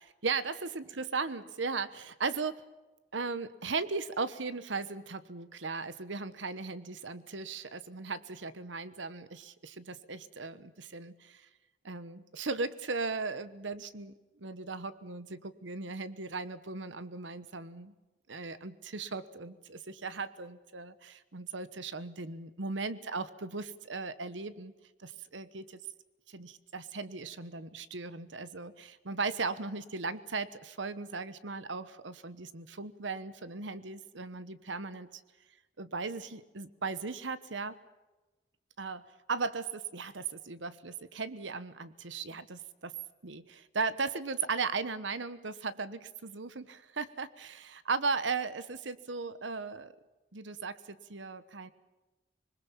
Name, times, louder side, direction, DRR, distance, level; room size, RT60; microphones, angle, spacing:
voice 1, 0.0-2.6 3.1-11.5 11.8-17.9 18.3-24.7 25.0-25.8 26.3-35.2 35.8-37.7 38.8-39.0 39.3-42.9 43.2-49.9 50.3-51.7, right 4 dB, 85° right, 15 dB, 1.1 m, -37 dB
26.0 x 21.0 x 7.3 m, 1.1 s
head